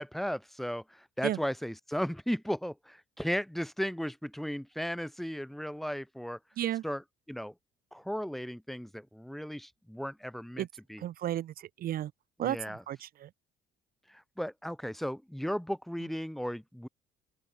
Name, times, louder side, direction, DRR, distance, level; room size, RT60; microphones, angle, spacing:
voice 1, 0.0-6.4 6.8-7.5 7.9-11.0 12.4-12.8 14.1-16.9, equal, ahead, 2.4 m, -35 dB
voice 2, 11.0-12.1 12.4-13.3, right 12 dB, 60° right, 1.4 m, -33 dB
open air
cardioid pair, 110°, 17 cm